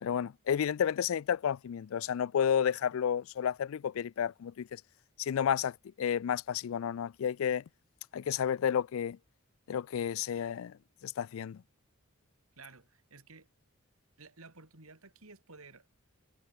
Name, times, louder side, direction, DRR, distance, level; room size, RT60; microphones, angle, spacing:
voice 1, 0.0-4.8 5.2-7.6 8.1-9.2 9.7-10.7 11.0-11.6, left 8 dB, 70° left, 0.3 m, -31 dB
voice 2, 12.6-13.5 14.2-16.1, right 3 dB, 80° right, 3.3 m, -54 dB
head